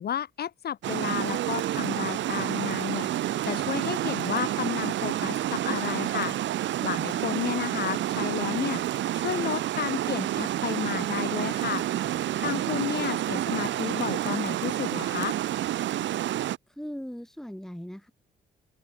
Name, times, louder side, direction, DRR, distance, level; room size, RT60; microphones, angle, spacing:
voice 1, 0.0-3.1 3.4-6.4 6.8-8.8 9.1-11.9 12.4-15.4, left 9 dB, 55° left, 0.9 m, -32 dB
Water, 0.8-16.6, right 12 dB, 70° right, 0.9 m, -29 dB
voice 2, 7.0-7.4 12.4-13.1 16.7-18.1, equal, ahead, 2.7 m, -40 dB
open air
cardioid pair, 90°, 20 cm